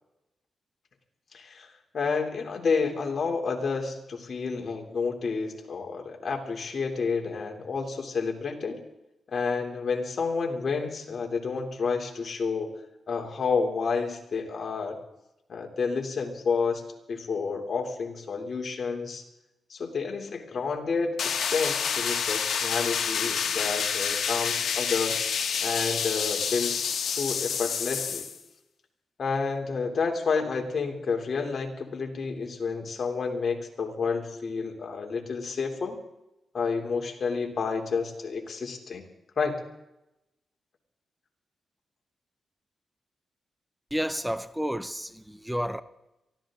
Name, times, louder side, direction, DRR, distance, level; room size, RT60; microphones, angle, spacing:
voice 1, 1.3-8.8 9.3-12.7 13.1-15.0 15.5-16.8 17.1-19.2 19.7-25.1 25.6-28.3 29.2-36.0 36.5-39.0 39.4-39.5, left 5 dB, 55° left, 3.1 m, -30 dB
sound 1, 21.2-28.4, left 7 dB, 80° left, 1.7 m, -28 dB
voice 2, 43.9-45.8, equal, 5° right, 0.8 m, -31 dB
23.5 x 15.5 x 3.8 m
cardioid pair, 85°, 0 cm